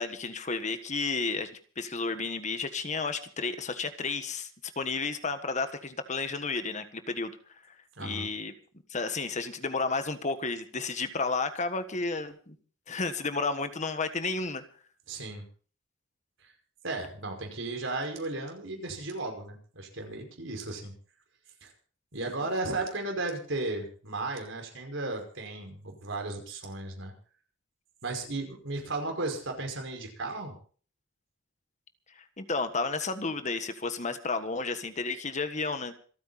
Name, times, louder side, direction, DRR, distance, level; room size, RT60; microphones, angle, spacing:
voice 1, 0.0-1.5 1.8-4.5 4.7-7.3 7.7-8.5 8.9-12.5 12.9-14.6 32.2-35.9, left 4 dB, 35° left, 9 dB, 1.5 m, -32 dB
voice 2, 8.0-8.3 15.1-15.4 16.4-16.5 16.8-20.9 21.6-21.7 22.1-27.1 28.0-30.6, right 2 dB, 65° right, 3 dB, 5.5 m, -35 dB
27.0 x 9.4 x 4.2 m, 0.41 s
head